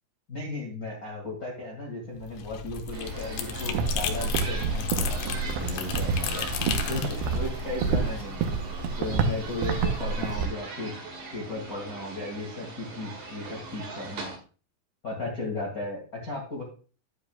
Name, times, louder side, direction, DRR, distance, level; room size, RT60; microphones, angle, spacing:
voice 1, 0.3-6.5 6.9-8.4 9.0-10.9 11.3-14.3 15.0-16.6, left 2 dB, 50° left, -2 dB, 1.0 m, -35 dB
sound 1, 2.1-8.3, left 7 dB, 80° left, 3.5 m, -34 dB
sound 2, 2.9-14.4, right 2 dB, 50° right, 2.9 m, -40 dB
sound 3, 3.5-10.5, right 5 dB, 75° right, 2.8 m, -29 dB
10.0 x 10.0 x 2.3 m, 0.37 s
omnidirectional pair, 5.7 m